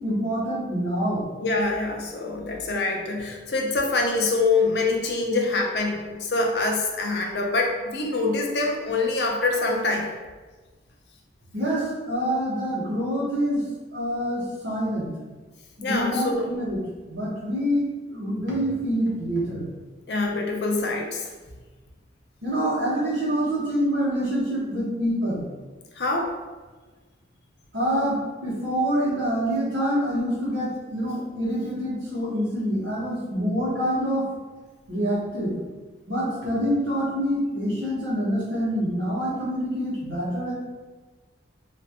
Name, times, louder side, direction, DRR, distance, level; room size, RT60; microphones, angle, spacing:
voice 1, 0.0-1.3 11.5-13.6 13.9-15.1 15.8-16.8 17.1-19.7 22.4-25.4 27.7-34.3 34.9-35.5 36.1-40.5, equal, 80° right, -6 dB, 1.3 m, -26 dB
voice 2, 1.4-10.1 15.8-16.5 20.1-21.3 26.0-26.3, left 3 dB, 60° left, 1 dB, 0.6 m, -25 dB
4.2 x 2.5 x 2.8 m, 1.3 s
head